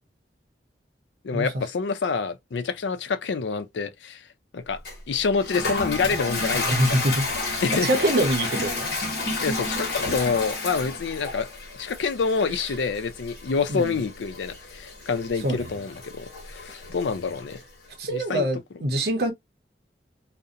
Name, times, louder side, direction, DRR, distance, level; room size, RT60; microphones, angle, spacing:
voice 1, 1.2-4.3 4.5-4.8 5.1-6.7 7.6-7.9 9.4-11.5 11.8-17.6 18.1-18.4, left 5 dB, 90° left, 0.4 m, -27 dB
Toilet flush, 4.9-17.6, left 3 dB, 60° left, 1.1 m, -31 dB
voice 2, 6.5-7.3 7.7-8.9 12.6-12.7 13.7-14.0 15.4-15.7 18.0-19.3, right 1 dB, 60° right, 0.6 m, -25 dB
2.4 x 2.1 x 2.6 m
head